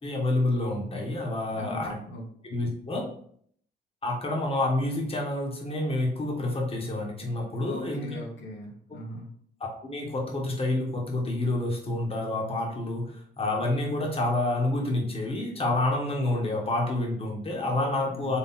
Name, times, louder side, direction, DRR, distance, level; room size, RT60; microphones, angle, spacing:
voice 1, 0.0-2.0 2.4-3.1 4.0-8.2 9.6-18.4, left 2 dB, 30° left, 0 dB, 1.4 m, -28 dB
voice 2, 1.5-2.2 7.6-9.3 18.0-18.4, left 1 dB, 75° left, -1 dB, 1.2 m, -40 dB
4.3 x 3.3 x 3.7 m, 0.62 s
cardioid pair, 85°, 19 cm